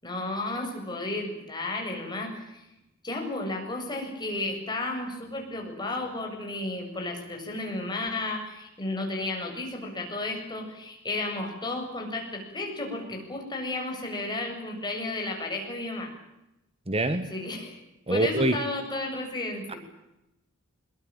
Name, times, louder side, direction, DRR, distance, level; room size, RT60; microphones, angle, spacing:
voice 1, 0.0-2.6 3.0-16.1 17.3-17.8 18.1-19.8, left 2 dB, 20° left, 1 dB, 7.8 m, -33 dB
voice 2, 16.9-17.3 18.1-18.6 19.7-19.8, right 2 dB, 30° right, 10 dB, 1.5 m, -25 dB
23.0 x 22.0 x 9.2 m, 0.91 s
head